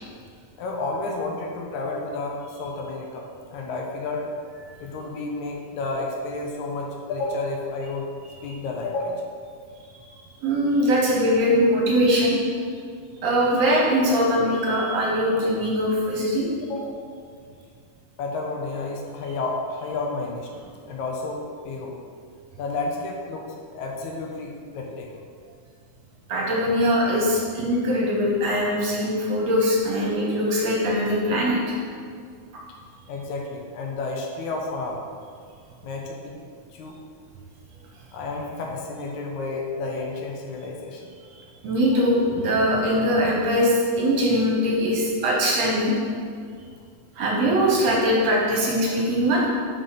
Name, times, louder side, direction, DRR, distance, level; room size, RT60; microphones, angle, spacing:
voice 1, 0.6-4.3 4.8-8.1 8.4-9.3 16.6-17.0 18.2-20.5 20.9-22.0 22.6-25.1 26.5-26.7 33.1-35.0 35.8-36.4 36.7-37.0 38.1-41.0 41.9-42.1, left 3 dB, 75° left, 0 dB, 2.0 m, -31 dB
voice 2, 10.4-12.4 13.2-16.5 26.3-31.8 41.6-45.9 47.2-49.5, equal, 65° right, -3 dB, 1.9 m, -21 dB
5.3 x 5.1 x 5.7 m, 2.1 s
omnidirectional pair, 3.6 m